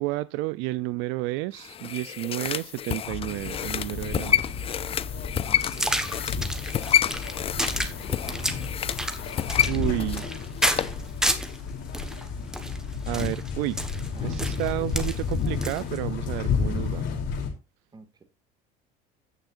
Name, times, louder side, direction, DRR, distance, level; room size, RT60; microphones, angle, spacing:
voice 1, 0.0-4.5 9.7-10.3 13.1-13.8 14.2-17.1, right 20 dB, 75° right, 0.4 m, -31 dB
sound 1, 1.6-11.0 11.3-11.4, left 9 dB, 30° left, 0.4 m, -29 dB
sound 2, 3.0-17.5, left 5 dB, 65° left, 3.0 m, -32 dB
voice 2, 5.4-5.9 7.7-8.4 14.1-14.5 14.8-15.1 17.9-18.2, right 4 dB, 20° right, 1.9 m, -49 dB
sound 3, 5.6-11.6 11.9-16.0, equal, 5° right, 1.2 m, -30 dB
16.0 x 5.7 x 2.5 m
cardioid pair, 125°, 21 cm